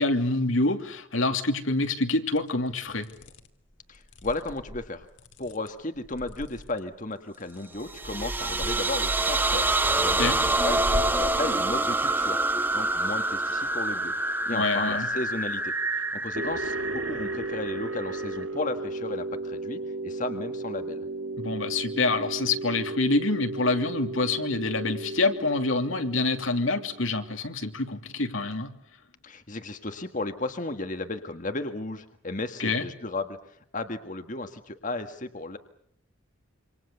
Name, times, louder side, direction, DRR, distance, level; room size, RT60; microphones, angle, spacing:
voice 1, 0.0-3.1 10.2-10.4 14.5-15.1 21.4-28.7 32.6-32.9, left 3 dB, 80° left, 6 dB, 3.0 m, -26 dB
sound 1, 2.4-2.5 3.0-3.5 3.9-6.8 7.3-8.0 8.3-8.9 9.5-11.4, equal, 65° left, 2.6 m, -37 dB
voice 2, 3.9-5.1 5.4-9.7 10.0-10.8 11.1-21.1 29.2-33.4 33.7-35.6, left 2 dB, 40° left, 7 dB, 1.7 m, -34 dB
sound 2, 7.8-18.4, right 2 dB, 10° right, 1.1 m, -27 dB
sound 3, 16.4-27.2, right 2 dB, 80° right, 3.1 m, -35 dB
27.5 x 26.0 x 7.0 m, 0.69 s
head